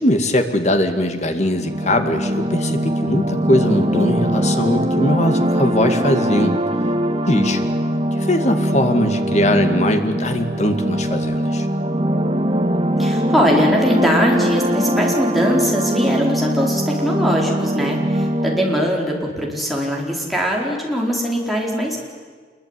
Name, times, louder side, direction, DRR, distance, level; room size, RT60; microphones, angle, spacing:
voice 1, 0.0-6.5 7.3-7.6 8.2-11.7, left 1 dB, 40° left, 6 dB, 2.3 m, -20 dB
sound 1, 1.5-18.9, right 1 dB, 30° right, 1.9 m, -21 dB
voice 2, 13.0-22.0, equal, ahead, -2 dB, 4.6 m, -21 dB
26.5 x 22.5 x 9.9 m, 1.6 s
head